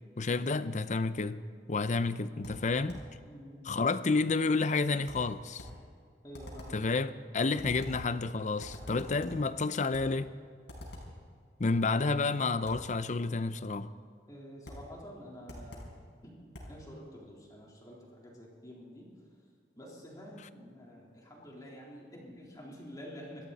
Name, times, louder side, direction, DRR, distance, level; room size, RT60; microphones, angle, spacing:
voice 1, 0.2-1.4 1.7-3.0 3.6-5.7 6.7-10.3 11.6-13.9, left 3 dB, 45° left, 0.6 m, -30 dB
sound 1, 2.4-3.2 5.1-5.9 6.3-6.9 7.6-8.2 8.6-9.5 9.9-10.2 10.7-11.2 12.7-12.9 14.7-14.9 15.5-16.0 16.5-16.8, left 1 dB, 85° left, 4.8 m, -46 dB
voice 2, 3.2-3.6 6.2-6.8 14.3-15.9 16.2-19.1 19.8-23.4, equal, 20° left, 3.7 m, -48 dB
26.0 x 13.5 x 4.2 m
head